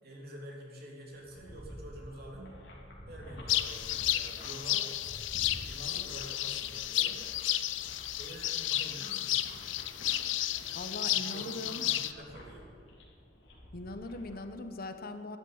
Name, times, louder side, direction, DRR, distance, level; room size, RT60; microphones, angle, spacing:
voice 1, 0.0-2.6 3.0-4.9 5.5-7.3 8.2-9.6 11.0-12.7, right 1 dB, 55° right, -2 dB, 3.1 m, -47 dB
sound 1, 1.0-14.5, equal, 70° left, 3.3 m, -50 dB
sound 2, 3.5-12.1, left 13 dB, 85° left, 0.6 m, -32 dB
voice 2, 10.7-11.8 13.7-15.4, left 2 dB, 55° left, 8 dB, 1.0 m, -41 dB
12.5 x 11.5 x 7.2 m, 2.3 s
head